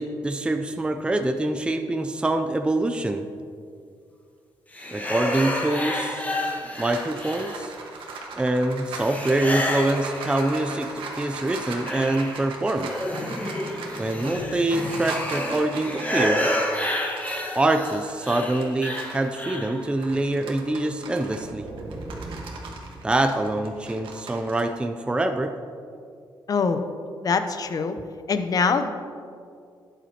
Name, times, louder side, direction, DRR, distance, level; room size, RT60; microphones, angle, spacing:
voice 1, 0.0-3.3 4.9-6.3 6.8-7.7 8.4-12.9 14.0-16.5 17.5-21.7 23.0-25.6, right 2 dB, 10° right, 6 dB, 0.5 m, -25 dB
sound 1, 4.7-7.9 9.0-11.0 11.4-19.8, left 1 dB, 20° left, 1.4 m, -30 dB
sound 2, 6.3-19.3 19.7-24.6, right 3 dB, 85° right, 1.4 m, -39 dB
sound 3, 20.9-23.8, right 2 dB, 30° right, 1.6 m, -40 dB
voice 2, 26.5-26.8 27.2-28.0 28.3-28.9, left 5 dB, 45° left, 9 dB, 0.7 m, -23 dB
12.0 x 9.2 x 2.9 m, 2.3 s
cardioid pair, 100°, 9 cm